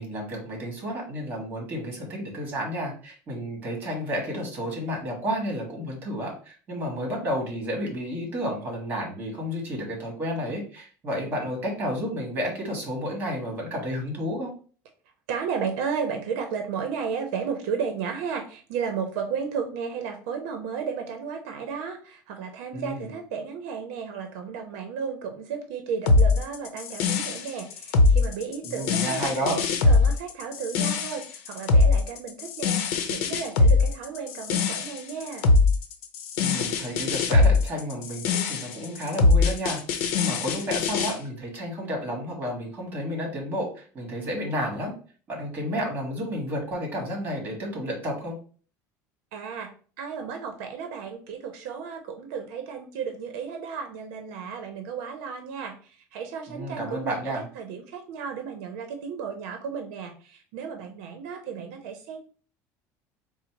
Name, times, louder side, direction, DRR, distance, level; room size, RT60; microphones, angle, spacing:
voice 1, 0.0-14.5 22.7-23.1 28.6-29.6 36.4-44.9 45.3-48.3 56.5-57.5, equal, 25° right, 0 dB, 1.7 m, -31 dB
voice 2, 15.3-35.5 49.3-49.7 50.0-62.2, right 6 dB, 80° right, 5 dB, 0.7 m, -33 dB
sound 1, 26.1-41.1, left 3 dB, 80° left, 0.7 m, -22 dB
4.0 x 2.1 x 4.5 m, 0.40 s
cardioid pair, 165°, 8 cm